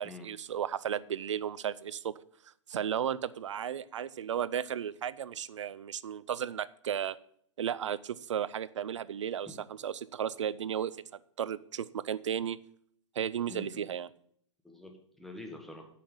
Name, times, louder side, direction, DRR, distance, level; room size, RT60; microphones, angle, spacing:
voice 1, 0.0-2.1 2.7-7.2 7.6-9.5 9.8-11.0 11.4-12.6 13.2-14.1, right 9 dB, 75° right, 19 dB, 0.5 m, -34 dB
voice 2, 13.5-13.9 14.6-15.9, left 2 dB, ahead, 3 dB, 1.6 m, -46 dB
8.4 x 5.9 x 7.1 m, 0.64 s
hypercardioid pair, 120°, 16 cm